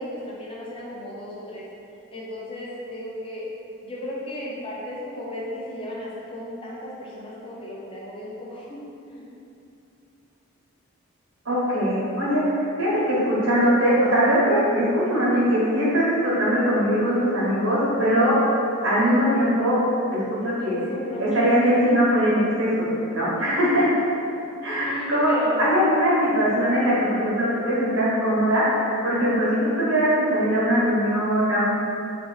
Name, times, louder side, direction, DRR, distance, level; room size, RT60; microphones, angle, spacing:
voice 1, 0.0-1.6 2.1-3.4 3.8-8.8 9.1-9.3 12.8-13.1 20.6-21.4 23.4-23.8 24.8-25.6 26.1-26.2, equal, 25° left, -6 dB, 0.6 m, -35 dB
voice 2, 11.4-18.4 18.8-19.8 20.3-20.8 21.2-22.9 23.1-23.9 24.6-31.6, equal, 75° right, -7 dB, 1.1 m, -21 dB
3.0 x 2.8 x 4.0 m, 2.7 s
head